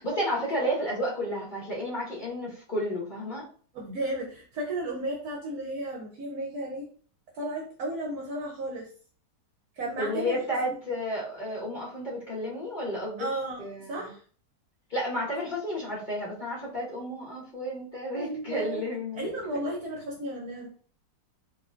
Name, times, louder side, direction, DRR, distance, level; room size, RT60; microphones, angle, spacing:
voice 1, 0.0-3.5 10.0-13.3 13.6-14.1 14.9-19.3, equal, 30° left, -5 dB, 1.3 m, -32 dB
voice 2, 3.7-6.9 7.3-8.9 9.8-10.4 10.7-10.8 13.2-14.2 18.1-18.8 19.1-20.7, right 1 dB, 65° right, -1 dB, 1.1 m, -34 dB
4.1 x 2.9 x 2.5 m, 0.43 s
omnidirectional pair, 1.9 m